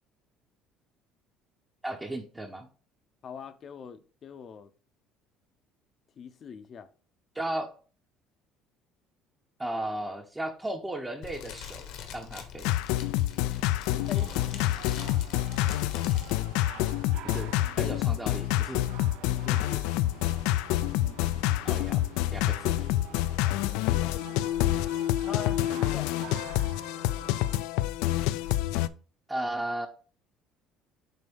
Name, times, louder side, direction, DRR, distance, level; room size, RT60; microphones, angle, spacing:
voice 1, 1.8-2.7 7.3-7.7 9.6-12.8 17.2-18.9 21.6-22.0 22.3-22.9 29.3-29.9, right 1 dB, 10° right, 0.7 m, -35 dB
voice 2, 3.2-4.7 6.2-6.9 13.8-14.8 19.3-19.9 23.4-24.2 25.3-26.4, left 7 dB, 40° left, 0.6 m, -43 dB
Fire, 11.2-16.3, left 8 dB, 70° left, 1.1 m, -43 dB
sound 1, 12.6-28.9, left 15 dB, 90° left, 0.3 m, -27 dB
sound 2, 13.8-27.6, right 11 dB, 80° right, 0.5 m, -48 dB
7.7 x 2.7 x 5.2 m
cardioid pair, 140°, 0 cm